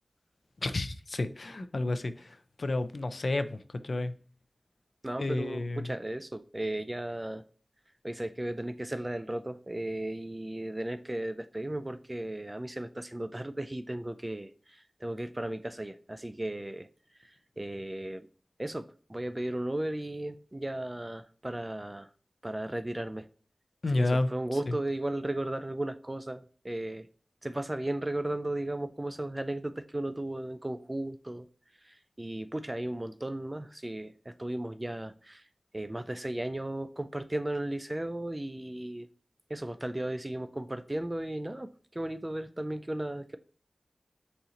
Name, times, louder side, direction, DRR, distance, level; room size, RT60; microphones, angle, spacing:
voice 1, 0.6-2.3 2.6-3.6 3.8-4.1 5.2-5.9 23.8-24.3 24.7-24.8, left 2 dB, 60° left, 0.4 m, -30 dB
voice 2, 5.0-7.4 8.0-14.5 15.0-16.9 17.6-18.3 18.6-22.1 22.4-23.3 23.9-27.1 27.4-31.5 32.2-35.4 35.7-39.1 39.5-41.7 42.0-43.4, right 1 dB, 20° right, 0.3 m, -35 dB
4.1 x 3.8 x 2.8 m
wide cardioid pair, 70°, 0 cm